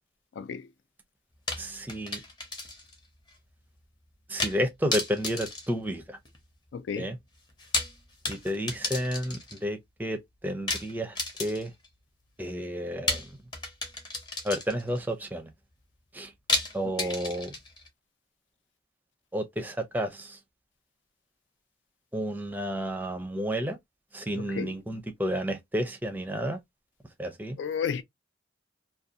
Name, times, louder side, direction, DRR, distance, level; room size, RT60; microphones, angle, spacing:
voice 1, 0.3-0.7 6.7-7.1 17.0-17.2 24.3-24.8 27.6-28.0, left 7 dB, 80° left, 0.3 m, -33 dB
sound 1, 1.5-3.0 3.3-3.4 4.4-4.6 4.9-6.4 7.5-9.6 10.7-11.9 13.1-15.0 16.5-17.9, left 2 dB, 25° left, 0.7 m, -33 dB
voice 2, 1.6-2.2 4.3-6.2 7.0-7.2 8.3-11.7 12.4-13.4 14.4-15.5 16.1-16.3 16.7-17.5 19.3-20.4 22.1-23.8 24.1-26.6 27.2-27.6, equal, 10° right, 0.5 m, -31 dB
2.5 x 2.3 x 2.6 m
head